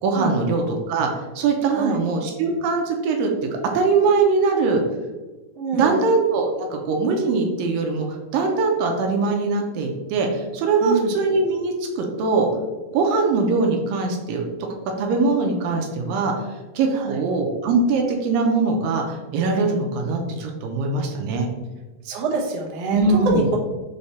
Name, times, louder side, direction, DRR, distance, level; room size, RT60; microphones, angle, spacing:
voice 1, 0.0-3.5 3.7-4.8 5.7-12.5 12.9-14.4 15.0-21.5 22.9-23.5, right 3 dB, 80° right, 2 dB, 2.4 m, -22 dB
voice 2, 5.5-6.0 10.8-11.1 16.9-17.2 22.0-23.0 23.2-23.6, right 4 dB, 60° right, -3 dB, 1.8 m, -25 dB
6.6 x 3.4 x 4.1 m, 1.2 s
omnidirectional pair, 4.1 m